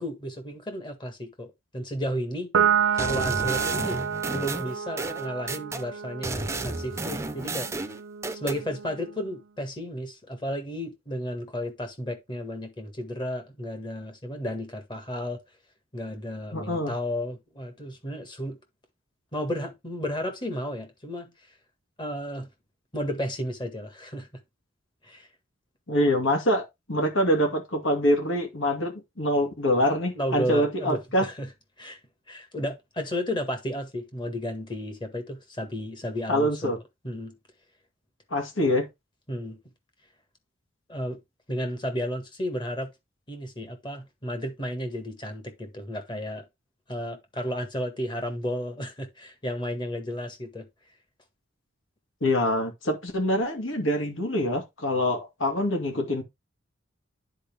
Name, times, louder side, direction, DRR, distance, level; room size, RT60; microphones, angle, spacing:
voice 1, 0.0-1.5 1.7-2.5 2.9-7.7 8.3-15.4 15.9-18.6 19.3-21.3 22.0-22.5 22.9-24.4 25.0-25.3 30.1-31.5 31.8-32.0 32.3-36.7 37.0-37.4 39.3-39.6 40.9-41.2 41.5-42.9 43.3-46.4 46.9-50.7, equal, 25° left, 1.7 m, -33 dB
Piano, 2.5-9.2, right 8 dB, 75° right, 0.6 m, -29 dB
sound 1, 3.0-5.8 6.2-8.6, right 3 dB, 15° right, 0.6 m, -32 dB
voice 2, 16.5-16.9 25.9-31.3 36.3-36.8 38.3-38.9 52.2-56.2, equal, 75° left, 2.4 m, -25 dB
9.9 x 4.5 x 3.4 m
head